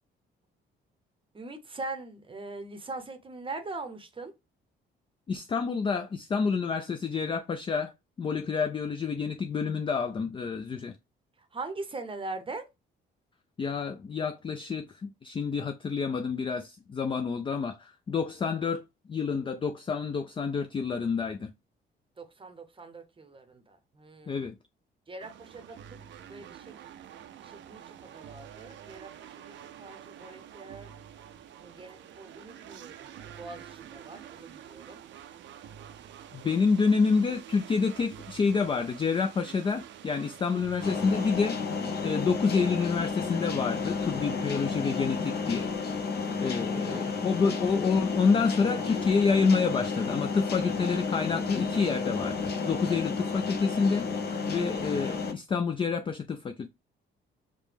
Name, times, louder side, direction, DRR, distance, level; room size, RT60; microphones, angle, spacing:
voice 1, 1.3-4.3 11.4-12.7 22.2-24.5 25.1-26.0 26.3-27.0 27.4-30.9 31.6-35.0 46.7-47.3, right 3 dB, 25° right, 0.7 m, -42 dB
voice 2, 5.3-7.9 8.2-10.9 13.6-21.5 24.3-24.5 36.3-41.6 42.0-45.7 46.4-54.1 54.5-56.7, left 5 dB, 25° left, 0.3 m, -28 dB
sound 1, 25.2-41.5, right 9 dB, 70° right, 0.5 m, -48 dB
sound 2, 40.8-55.3, left 4 dB, 55° left, 0.7 m, -32 dB
4.9 x 2.1 x 3.3 m
cardioid pair, 90°, 20 cm